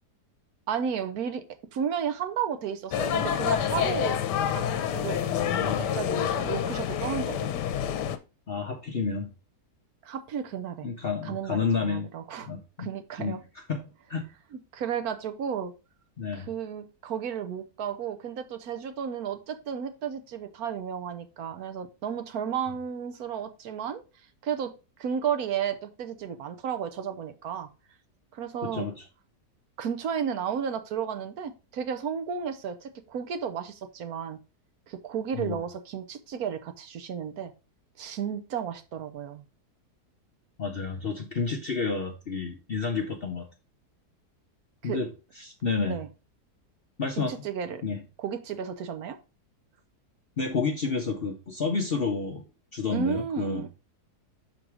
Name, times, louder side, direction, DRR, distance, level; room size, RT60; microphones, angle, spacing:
voice 1, 0.7-1.4 1.7-4.2 4.5-5.2 5.7-7.5 10.0-10.9 11.2-12.5 12.8-13.4 14.5-15.7 16.3-24.0 24.4-24.7 25.0-27.7 28.3-28.9 29.8-34.4 34.9-37.5 38.0-39.4 44.8-45.0 45.8-46.1 47.2-47.8 48.2-49.2 52.9-53.7, right 8 dB, 70° right, 1.1 m, -33 dB
sound 1, 2.9-8.2, left 9 dB, 85° left, 1.2 m, -28 dB
voice 2, 5.5-6.0 8.5-9.3 10.8-12.1 12.4-12.9 13.2-13.4 13.7-14.3 16.2-16.5 28.6-29.0 35.4-35.6 40.6-43.5 44.8-45.1 45.4-46.0 47.0-47.4 47.8-48.0 50.4-52.4 52.7-53.7, left 4 dB, 50° left, 0.7 m, -30 dB
6.1 x 3.9 x 4.6 m
omnidirectional pair, 1.8 m